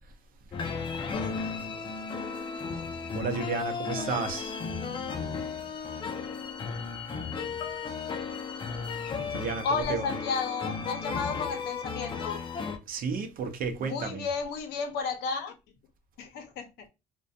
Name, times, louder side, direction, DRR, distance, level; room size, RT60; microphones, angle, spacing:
sound 1, 0.5-12.8, left 5 dB, 30° left, 0.4 m, -35 dB
voice 1, 3.1-4.6 9.3-10.2 12.9-14.3, right 5 dB, 55° right, 0.6 m, -32 dB
voice 2, 9.6-12.5 13.8-15.5 16.2-16.9, left 5 dB, 75° left, 0.6 m, -32 dB
2.4 x 2.2 x 2.6 m
cardioid pair, 110°, 17 cm